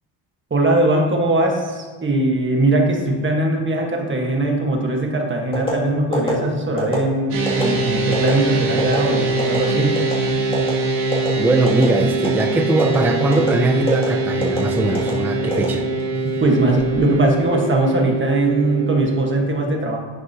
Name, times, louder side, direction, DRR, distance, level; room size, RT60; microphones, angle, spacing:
voice 1, 0.5-10.0 16.2-20.0, right 2 dB, 25° right, 1 dB, 1.4 m, -20 dB
sound 1, 5.5-5.8 6.1-6.3 6.8-7.0 7.5-7.6 8.1-8.3 8.8-9.0 9.4-9.6 10.0-10.2 10.5-10.7 11.1-11.3 11.7-11.9 12.2-12.4 12.8-13.0 13.3-13.5 13.9-14.1 14.4-14.6 14.9-15.1 15.5-16.2 16.6-16.9, equal, 10° left, 2.3 m, -24 dB
sound 2, 7.3-19.4, right 2 dB, 90° right, 2.7 m, -23 dB
voice 2, 11.4-15.9, right 2 dB, 5° right, 5 dB, 0.3 m, -20 dB
11.0 x 8.7 x 2.8 m, 1.4 s
cardioid pair, 155°, 49 cm